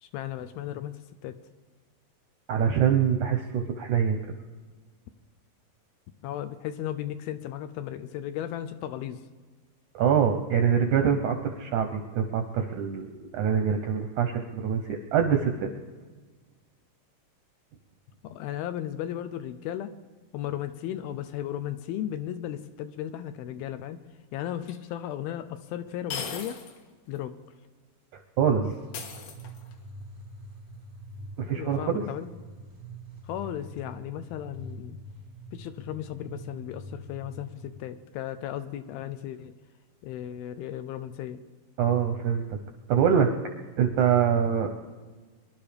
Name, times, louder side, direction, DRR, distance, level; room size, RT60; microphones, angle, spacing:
voice 1, 0.0-1.3 6.2-9.2 18.2-19.9 20.3-24.0 24.3-26.6 27.1-27.3 31.4-32.3 33.2-35.0 35.5-39.5 40.0-41.4, left 11 dB, 80° left, 11 dB, 2.4 m, -35 dB
voice 2, 2.5-4.2 9.9-15.7 28.4-28.8 31.4-32.0 41.8-42.6 42.9-43.3 43.8-44.7, right 8 dB, 75° right, 5 dB, 1.8 m, -24 dB
sound 1, 24.7-24.8 26.1-26.8 27.2-27.3 28.9-29.8, left 6 dB, 60° left, 2.6 m, -37 dB
sound 2, 28.7-37.8, right 1 dB, 45° right, 0.8 m, -45 dB
24.0 x 11.5 x 5.1 m, 1.4 s
omnidirectional pair, 4.6 m